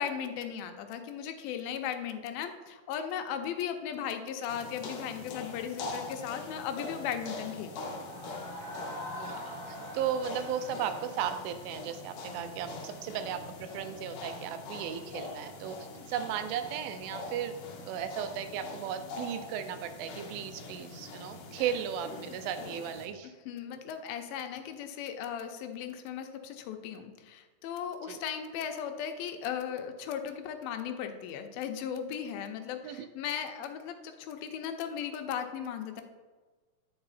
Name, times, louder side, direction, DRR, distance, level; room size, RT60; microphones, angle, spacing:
voice 1, 0.0-7.7 15.9-16.0 23.5-36.0, left 8 dB, 85° left, 6 dB, 2.4 m, -37 dB
sound 1, 4.5-23.1, left 3 dB, 70° left, 1.7 m, -43 dB
sound 2, 7.9-12.6, equal, 60° right, 3.7 m, -44 dB
voice 2, 9.2-15.8 16.1-17.5 17.9-23.3 28.1-28.2 32.8-33.1, right 9 dB, 80° right, 9 dB, 2.3 m, -36 dB
9.6 x 4.7 x 4.1 m, 1.3 s
omnidirectional pair, 4.3 m